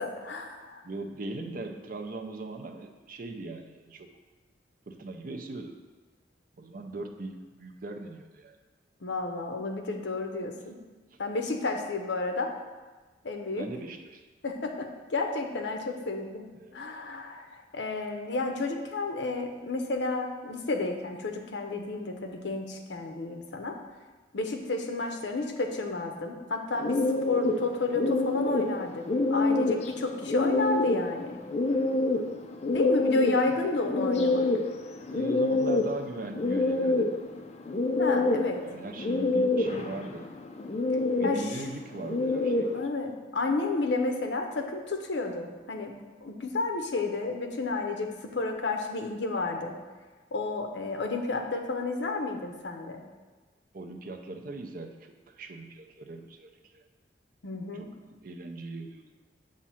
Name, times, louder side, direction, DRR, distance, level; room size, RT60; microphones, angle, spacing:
voice 1, 0.0-0.8 9.0-10.8 11.2-12.5 13.2-13.7 14.4-16.4 16.7-23.8 24.3-31.4 32.7-34.5 38.0-38.6 40.9-41.6 42.7-46.0 46.2-49.8 50.3-53.0 57.4-57.9, left 3 dB, 70° left, 4 dB, 0.7 m, -31 dB
voice 2, 0.8-4.1 4.9-5.8 6.6-8.6 13.6-14.2 16.6-16.8 35.1-37.1 38.6-40.3 41.1-42.8 53.7-56.8 57.8-59.0, right 2 dB, 50° right, 4 dB, 0.5 m, -40 dB
sound 1, 26.8-42.9, left 2 dB, 35° left, 0.4 m, -27 dB
7.2 x 2.5 x 5.6 m, 1.3 s
head